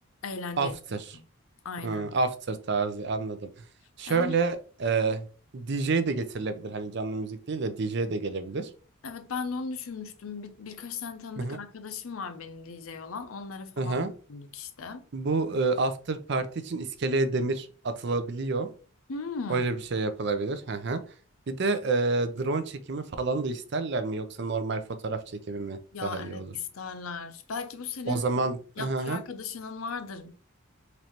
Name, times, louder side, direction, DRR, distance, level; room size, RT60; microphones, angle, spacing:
voice 1, 0.2-0.8 1.1-1.2 1.6-2.1 4.1-4.4 9.0-15.1 19.1-19.7 25.9-30.3, left 5 dB, 75° left, 0.6 m, -37 dB
voice 2, 1.8-3.5 4.0-5.3 5.5-8.7 11.4-11.6 13.8-14.1 15.1-18.7 19.5-21.0 21.5-26.5 28.1-29.2, right 3 dB, 50° right, 0.5 m, -29 dB
4.0 x 3.1 x 2.9 m
head